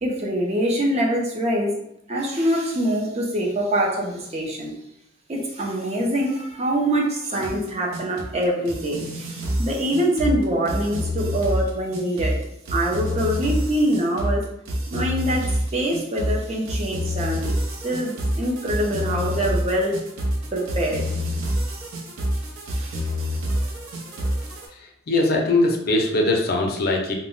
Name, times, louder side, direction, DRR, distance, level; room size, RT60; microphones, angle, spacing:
voice 1, 0.0-1.7 2.1-4.7 5.3-12.4 12.7-14.5 14.9-17.5 17.8-20.0 20.5-21.0 22.7-23.1, right 1 dB, 30° right, -1 dB, 0.4 m, -24 dB
sound 1, 7.2-24.7, equal, 80° right, 0.6 m, -27 dB
voice 2, 24.7-27.1, left 2 dB, 45° left, 2 dB, 0.4 m, -21 dB
2.1 x 2.0 x 3.7 m, 0.81 s
head